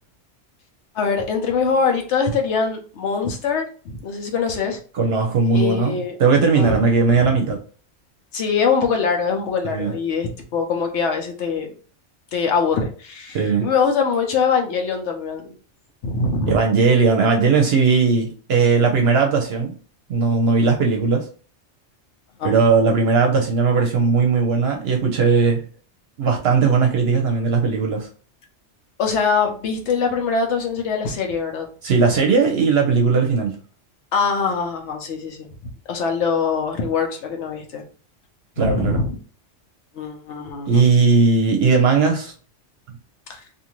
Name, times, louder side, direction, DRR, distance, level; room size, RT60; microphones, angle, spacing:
voice 1, 0.9-4.8 5.5-6.2 6.5-7.3 8.3-11.7 12.3-15.5 16.0-16.6 22.4-22.5 29.0-31.7 34.1-35.5 35.9-37.8 38.6-39.2 39.9-40.8 43.3-43.4, left 5 dB, 75° left, 3 dB, 1.0 m, -23 dB
voice 2, 5.0-7.6 9.6-9.9 13.3-13.7 16.5-19.7 20.1-21.3 22.4-25.6 26.2-28.1 31.8-33.6 38.6-39.0 40.7-42.3, right 4 dB, 65° right, 3 dB, 0.8 m, -18 dB
2.6 x 2.5 x 2.9 m, 0.40 s
omnidirectional pair, 1.2 m